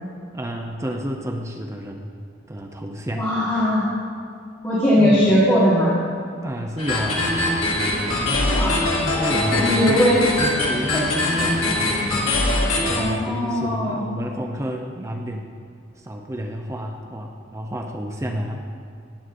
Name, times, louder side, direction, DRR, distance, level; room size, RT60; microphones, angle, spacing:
voice 1, 0.3-2.1 2.5-3.3 5.0-5.3 6.4-7.4 9.0-10.1 10.6-12.2 12.5-15.5 16.0-18.7, equal, 15° right, 2 dB, 0.5 m, -30 dB
voice 2, 3.1-3.8 4.6-5.9 8.5-8.9 9.5-10.2 10.9-11.0 12.9-14.0, equal, 15° left, -8 dB, 1.6 m, -19 dB
sound 1, 6.8-13.0, left 2 dB, 85° left, 2.0 m, -22 dB
17.0 x 8.0 x 2.6 m, 2.3 s
head